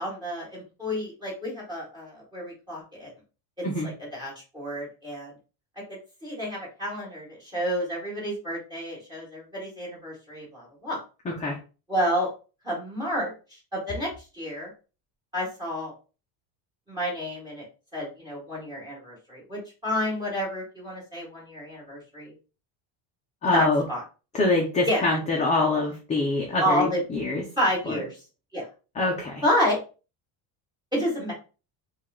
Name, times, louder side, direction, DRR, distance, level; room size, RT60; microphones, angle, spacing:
voice 1, 0.0-3.1 3.8-5.3 5.9-11.0 11.9-12.3 12.6-14.7 15.3-15.9 16.9-17.7 17.9-22.3 23.5-24.0 24.8-25.0 26.6-27.0 27.6-28.2 28.5-28.7 29.4-29.8 30.9-31.3, equal, 10° right, -3 dB, 2.0 m, -30 dB
voice 2, 11.3-11.6 23.4-23.9 24.3-27.4 27.9-28.0 29.0-29.4, left 2 dB, 15° left, -1 dB, 0.4 m, -25 dB
4.6 x 2.4 x 3.6 m, 0.34 s
cardioid pair, 175°, 50 cm